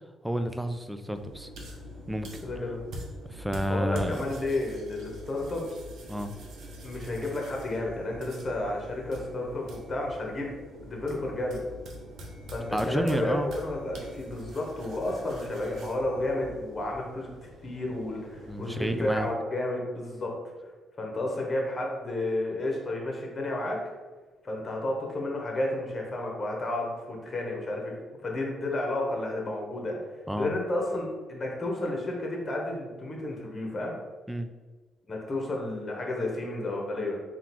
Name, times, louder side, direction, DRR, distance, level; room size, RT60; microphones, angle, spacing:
voice 1, 0.2-1.5 2.1-2.3 3.2-4.3 6.1-6.3 12.7-13.5 18.5-19.3 30.3-30.5 34.3-34.5, equal, 5° right, 8 dB, 0.3 m, -30 dB
sound 1, 1.2-19.3, equal, 70° right, 0.8 m, -44 dB
voice 2, 2.4-2.8 3.7-5.6 6.8-10.5 10.8-11.6 12.5-17.3 17.6-20.5 21.0-23.8 24.4-27.9 28.2-30.0 30.4-33.9 35.1-37.2, left 2 dB, 30° left, -1 dB, 1.1 m, -31 dB
3.6 x 2.4 x 4.4 m, 1.3 s
cardioid pair, 90°, 0 cm